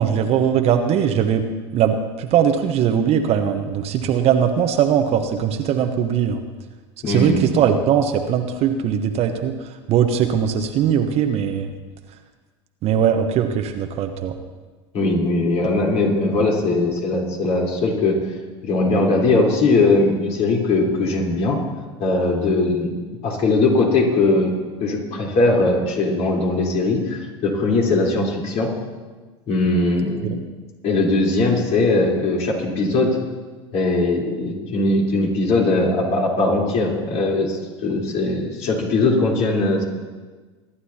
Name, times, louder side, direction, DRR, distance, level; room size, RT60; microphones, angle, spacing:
voice 1, 0.0-1.4 1.7-6.4 7.1-9.6 9.9-11.7 12.8-14.3 30.2-30.3, right 8 dB, 45° right, 5 dB, 1.2 m, -20 dB
voice 2, 7.0-7.6 14.9-18.2 18.6-21.6 22.0-23.0 23.2-24.5 24.8-28.7 29.5-30.3 30.8-33.1 33.7-39.8, left 2 dB, 50° left, -2 dB, 3.9 m, -20 dB
24.5 x 11.0 x 2.9 m, 1.3 s
hypercardioid pair, 85°, 15 cm